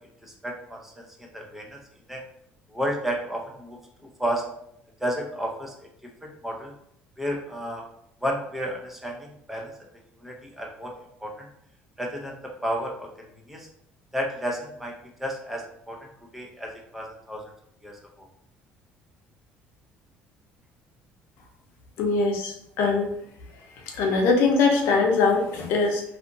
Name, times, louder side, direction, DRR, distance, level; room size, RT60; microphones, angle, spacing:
voice 1, 0.2-1.8 2.1-2.2 2.7-4.5 5.0-5.9 6.2-6.7 7.2-7.8 8.2-9.7 10.2-11.5 12.0-13.7 14.1-16.1 16.3-17.4 17.8-18.3, equal, 5° right, 0 dB, 0.5 m, -32 dB
voice 2, 22.0-23.1 23.8-26.0, left 4 dB, 80° left, 1 dB, 0.6 m, -22 dB
2.7 x 2.5 x 2.5 m, 0.73 s
cardioid pair, 130°, 4 cm